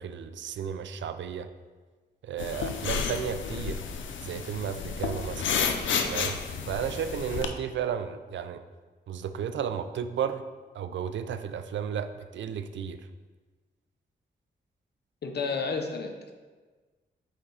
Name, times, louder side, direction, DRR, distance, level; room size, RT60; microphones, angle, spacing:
voice 1, 0.0-1.5 2.2-3.8 4.2-5.4 6.1-6.4 6.7-8.6 9.1-10.4 10.7-13.0, right 8 dB, 75° right, 10 dB, 0.4 m, -33 dB
sound 1, 2.4-7.5, left 6 dB, 90° left, 0.6 m, -31 dB
voice 2, 15.2-16.3, left 4 dB, 60° left, 4 dB, 0.9 m, -32 dB
8.0 x 3.6 x 4.2 m, 1.4 s
cardioid pair, 70°, 19 cm